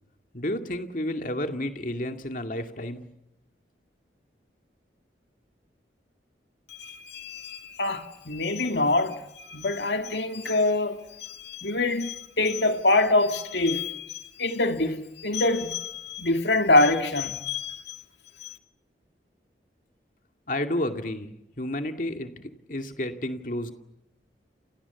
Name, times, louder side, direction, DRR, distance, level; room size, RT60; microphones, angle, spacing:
voice 1, 0.3-3.0 20.5-23.7, left 1 dB, 50° left, 2.3 m, -31 dB
voice 2, 6.7-18.0 18.4-18.6, left 2 dB, 80° left, 2.4 m, -25 dB
30.0 x 28.0 x 7.2 m
head